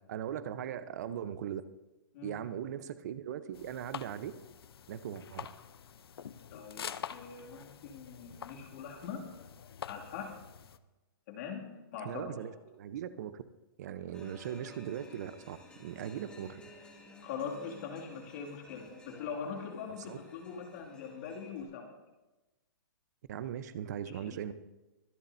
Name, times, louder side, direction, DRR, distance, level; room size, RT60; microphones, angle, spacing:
voice 1, 0.1-1.6 2.2-4.3 4.9-5.5 12.0-13.4 13.8-16.6 20.1-20.2 23.3-24.5, right 9 dB, 45° right, 13 dB, 0.8 m, -39 dB
sound 1, 3.5-10.8, left 8 dB, 85° left, 0.7 m, -46 dB
voice 2, 6.5-9.3 9.9-10.4 11.3-12.3 17.2-21.9 24.2-24.4, left 6 dB, 40° left, 0 dB, 2.5 m, -42 dB
sound 2, 14.1-21.6, left 2 dB, 10° left, 1.9 m, -55 dB
24.0 x 11.5 x 2.7 m, 1.1 s
hypercardioid pair, 165°, 12 cm